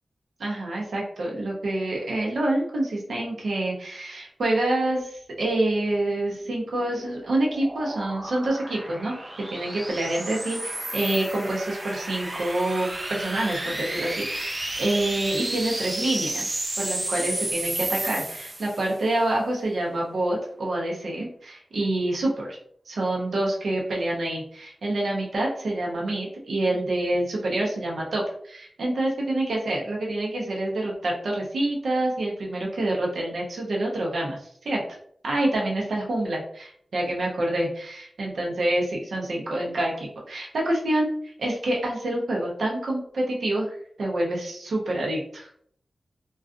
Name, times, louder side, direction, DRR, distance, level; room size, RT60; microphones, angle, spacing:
voice 1, 0.4-9.2 9.5-16.5 16.8-22.6 22.9-34.8 35.2-45.5, right 1 dB, 90° right, -2 dB, 0.6 m, -27 dB
sound 1, 6.4-19.0, right 1 dB, 25° right, 0.3 m, -32 dB
2.4 x 2.3 x 2.4 m, 0.63 s
wide cardioid pair, 120°, 0 cm